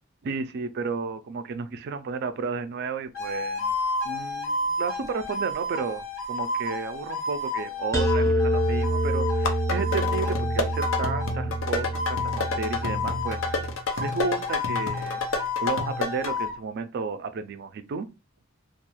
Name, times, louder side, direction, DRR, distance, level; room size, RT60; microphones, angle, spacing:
voice 1, 0.2-3.7 4.0-13.6 14.0-15.2 15.6-18.1, right 4 dB, 55° right, 0.3 m, -32 dB
sound 1, 3.1-11.4 11.9-13.6 13.9-16.5, left 3 dB, 85° left, 0.9 m, -31 dB
sound 2, 7.9-13.7, right 1 dB, 15° left, 0.6 m, -27 dB
sound 3, 9.3-16.3, left 3 dB, 70° left, 0.5 m, -30 dB
2.3 x 2.2 x 3.0 m
head